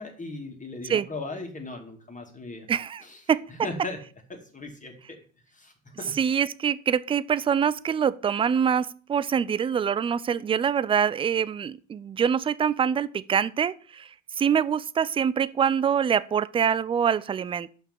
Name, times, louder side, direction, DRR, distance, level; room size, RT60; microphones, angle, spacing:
voice 1, 0.0-2.7 3.0-3.2 3.5-4.0 4.3-5.2 5.5-6.2, left 2 dB, 20° left, 2.5 m, -38 dB
voice 2, 2.7-3.0 3.3-3.5 6.2-17.7, right 7 dB, 15° right, 0.3 m, -25 dB
7.0 x 5.8 x 7.4 m
hypercardioid pair, 70°, 40 cm